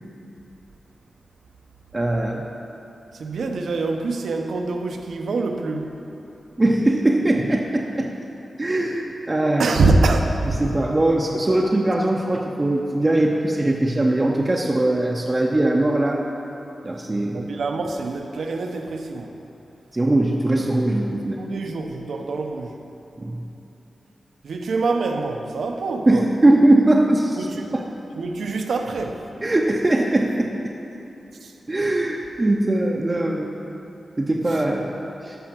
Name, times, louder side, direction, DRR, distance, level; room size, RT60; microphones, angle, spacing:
voice 1, 1.9-2.4 6.6-8.1 8.6-9.7 10.6-16.2 16.8-17.4 19.9-21.4 23.2-23.4 26.1-27.5 27.7-27.8 29.4-30.5 31.7-33.5 34.2-34.9 35.2-35.4, right 1 dB, 20° right, 0.6 m, -20 dB
voice 2, 3.1-6.0 9.6-10.6 17.3-19.3 21.4-22.8 24.4-26.3 27.4-27.8 28.1-29.3 31.4-31.5 34.5-34.6, right 3 dB, 80° right, 0.8 m, -25 dB
13.5 x 5.7 x 5.9 m
wide cardioid pair, 160°, 0 cm